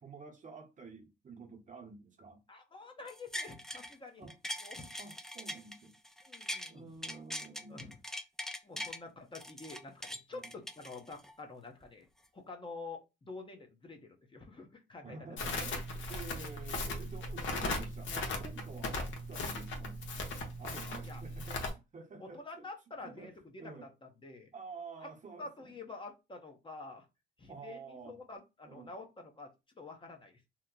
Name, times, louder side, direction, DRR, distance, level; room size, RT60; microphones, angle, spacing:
voice 1, 0.0-2.4 4.2-4.4 5.0-6.0 6.7-7.9 8.7-8.9 10.3-10.5 15.0-20.0 20.6-22.6 23.0-23.3 23.6-23.9 24.5-25.7 27.5-28.2 28.6-28.9, right 4 dB, 40° right, 0.9 m, -50 dB
voice 2, 2.5-4.3 4.6-4.9 6.2-7.0 7.7-8.0 8.6-12.1 12.3-15.2 20.6-21.2 22.2-24.5 25.0-25.1 25.4-27.1 27.4-27.8 28.1-29.5 29.8-30.3, left 3 dB, 25° left, 0.8 m, -48 dB
sound 1, 3.1-3.9 4.3-6.7 7.0-9.0 9.3-11.3 11.8-11.9, left 1 dB, ahead, 0.4 m, -42 dB
Crackle, 15.4-21.7, left 2 dB, 70° left, 1.0 m, -38 dB
2.9 x 2.1 x 3.7 m
cardioid pair, 90°, 20 cm